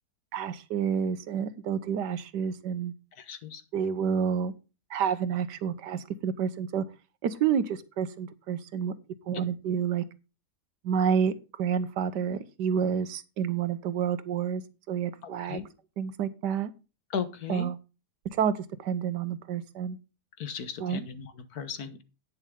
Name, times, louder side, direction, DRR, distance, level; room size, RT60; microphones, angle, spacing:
voice 1, 0.3-2.9 3.7-4.5 4.9-6.8 7.2-8.9 9.3-10.0 10.8-14.6 14.9-15.6 16.0-16.7 17.5-17.8 18.2-18.5 18.8-20.0 20.8-21.0, right 7 dB, 90° right, 14 dB, 1.6 m, -29 dB
voice 2, 3.1-3.6 9.3-9.4 15.2-15.7 17.1-17.7 20.4-22.0, left 6 dB, 65° left, 11 dB, 1.7 m, -36 dB
10.5 x 9.6 x 3.7 m, 0.31 s
omnidirectional pair, 1.8 m